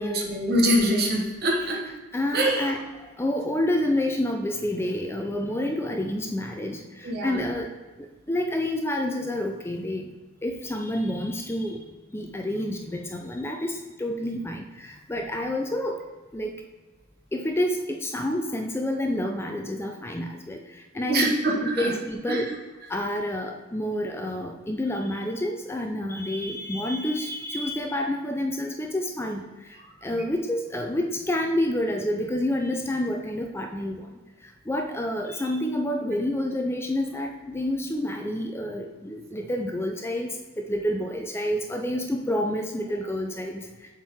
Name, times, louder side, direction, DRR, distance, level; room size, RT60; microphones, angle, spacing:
voice 1, 0.0-1.8 2.3-2.7 7.0-7.4 20.9-21.9 22.3-22.5, right 1 dB, 50° right, 0 dB, 1.3 m, -24 dB
voice 2, 2.1-2.8 3.2-7.7 8.3-10.1 10.4-11.8 12.1-16.0 16.3-16.5 17.3-20.6 20.9-21.3 21.8-22.5 22.9-29.4 30.0-34.1 34.7-43.6, left 1 dB, 10° left, 3 dB, 0.4 m, -28 dB
7.1 x 4.4 x 4.7 m, 1.2 s
head